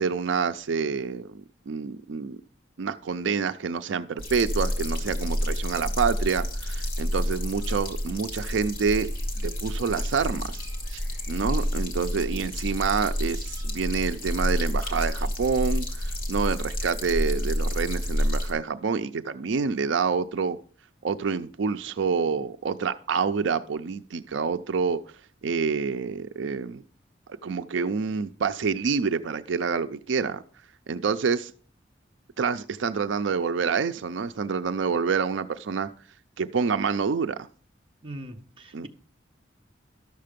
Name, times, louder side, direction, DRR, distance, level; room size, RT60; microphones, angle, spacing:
voice 1, 0.0-1.4 1.7-2.4 2.8-9.1 9.4-10.6 10.9-11.0 11.3-20.6 21.0-25.0 25.4-26.8 27.4-30.4 30.9-31.5 32.4-35.9 36.4-37.5 38.7-38.9, right 5 dB, 80° right, 0.4 m, -27 dB
sound 1, 4.2-18.5, equal, 50° left, 2.3 m, -29 dB
voice 2, 38.0-38.9, right 1 dB, 30° right, 1.0 m, -40 dB
12.5 x 6.6 x 5.1 m
head